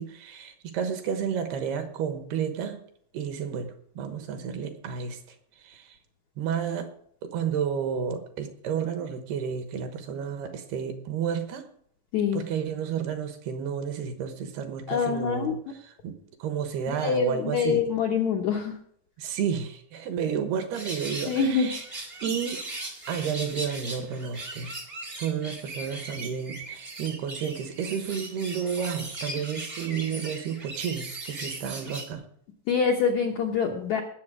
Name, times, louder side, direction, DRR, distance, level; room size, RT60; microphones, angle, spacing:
voice 1, 0.0-2.8 3.1-5.2 5.6-6.0 6.4-6.9 7.2-11.6 12.3-15.6 15.8-16.1 16.4-17.8 19.2-21.8 22.2-22.6 23.1-24.7 25.2-32.2, right 7 dB, 70° right, 7 dB, 3.0 m, -31 dB
voice 2, 14.9-15.5 16.9-18.8 21.3-21.7 32.7-34.0, left 6 dB, 70° left, 1 dB, 1.7 m, -25 dB
sound 1, 20.7-32.1, right 2 dB, 45° right, 0.7 m, -38 dB
19.0 x 7.3 x 5.0 m, 0.63 s
omnidirectional pair, 5.0 m